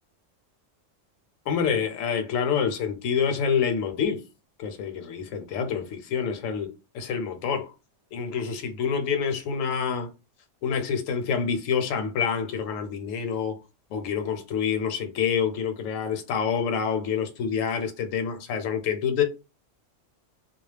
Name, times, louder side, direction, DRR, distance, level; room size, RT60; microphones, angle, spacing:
voice 1, 1.5-4.2 4.6-6.7 6.9-7.7 8.1-10.1 10.6-13.6 13.9-19.2, left 7 dB, 80° left, 0.9 m, -27 dB
2.3 x 2.0 x 3.2 m
omnidirectional pair, 1.3 m